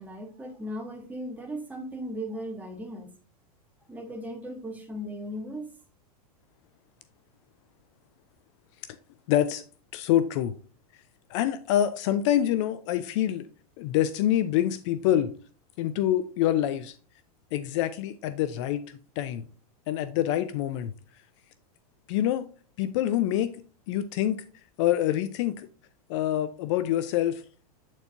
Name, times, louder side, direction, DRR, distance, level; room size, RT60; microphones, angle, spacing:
voice 1, 0.0-3.1 3.9-5.7, equal, 10° right, 1.0 m, -37 dB
voice 2, 9.3-9.6 9.9-10.5 11.3-13.5 13.8-15.3 15.8-16.9 17.5-18.8 19.2-19.5 19.9-20.9 22.1-22.5 22.8-23.5 23.9-24.4 24.8-25.7 26.1-27.4, left 12 dB, 50° left, 0.4 m, -26 dB
8.1 x 4.4 x 2.8 m
supercardioid pair, 140°, 20 cm